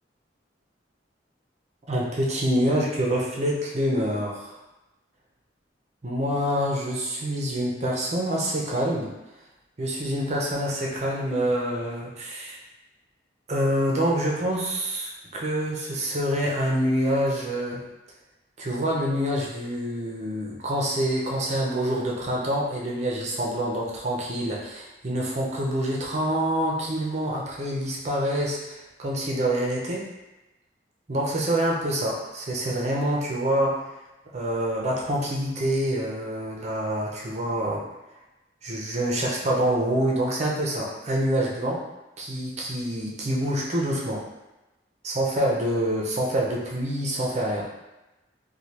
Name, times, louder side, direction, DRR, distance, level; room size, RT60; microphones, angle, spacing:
voice 1, 1.9-4.5 6.0-9.1 9.8-12.6 13.5-17.8 18.6-30.0 31.1-33.8 34.3-37.8 38.6-41.8 42.2-44.2 45.0-47.7, right 1 dB, 40° right, -3 dB, 0.6 m, -26 dB
3.2 x 2.2 x 2.8 m, 1.0 s
head